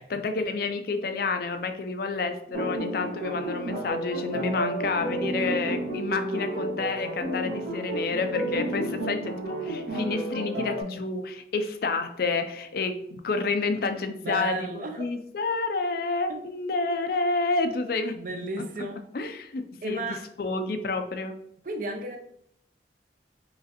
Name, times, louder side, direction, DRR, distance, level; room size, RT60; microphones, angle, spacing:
voice 1, 0.0-18.1 19.1-21.4, left 3 dB, 55° left, 7 dB, 0.4 m, -29 dB
sound 1, 2.5-10.8, right 1 dB, 70° right, 1.6 m, -31 dB
voice 2, 14.2-15.1 16.3-16.4 18.1-19.0 19.8-20.2 21.6-22.2, right 1 dB, 45° right, 5 dB, 0.6 m, -33 dB
4.8 x 3.2 x 2.9 m, 0.69 s
head